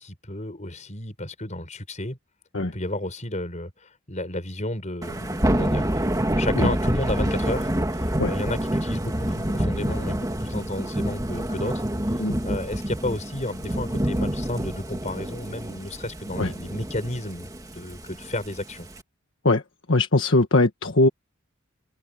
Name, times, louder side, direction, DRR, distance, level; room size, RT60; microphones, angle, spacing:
voice 1, 0.0-2.2 2.7-11.8 12.4-18.9, left 1 dB, 35° left, 5.6 m, -32 dB
Thunder / Rain, 5.0-19.0, right 1 dB, 15° right, 1.9 m, -27 dB
voice 2, 19.9-21.1, left 2 dB, 65° left, 1.5 m, -20 dB
head